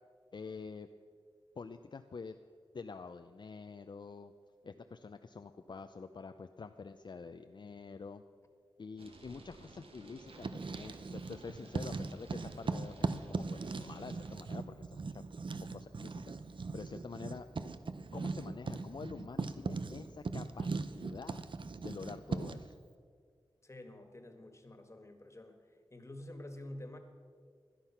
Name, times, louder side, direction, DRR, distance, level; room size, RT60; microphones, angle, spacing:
voice 1, 0.3-0.9 1.6-2.4 2.7-4.3 4.6-8.2 8.8-15.2 15.7-16.2 16.5-17.5 18.1-21.4 21.8-22.8, left 4 dB, 55° left, 7 dB, 0.5 m, -47 dB
rain on the highway, 9.0-14.3, right 3 dB, 85° right, 1.6 m, -54 dB
Writing, 10.3-11.4 11.7-22.7, right 4 dB, 60° right, 0.8 m, -39 dB
voice 2, 23.6-27.0, left 1 dB, 30° left, 6 dB, 1.7 m, -49 dB
17.0 x 12.0 x 5.8 m, 2.1 s
wide cardioid pair, 90°, 9 cm